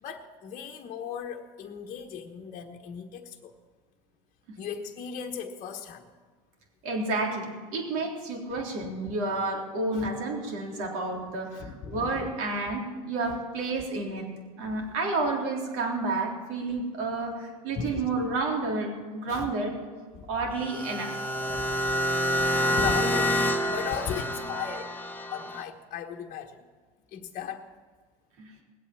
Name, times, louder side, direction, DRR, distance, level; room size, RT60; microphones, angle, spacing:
voice 1, 0.0-3.5 4.6-6.0 10.0-10.1 11.5-12.3 14.6-14.8 17.7-18.0 19.3-19.5 20.1-20.2 22.5-23.4 23.7-24.9 25.3-26.5 27.1-27.6, left 7 dB, 45° left, 1 dB, 1.2 m, -36 dB
voice 2, 6.8-14.3 14.6-19.8 20.3-21.2 28.4-28.5, right 3 dB, 70° right, 0 dB, 3.7 m, -30 dB
sound 1, 20.6-25.6, equal, 10° left, 1.3 m, -28 dB
19.0 x 8.4 x 7.4 m, 1.5 s
hypercardioid pair, 85°, 19 cm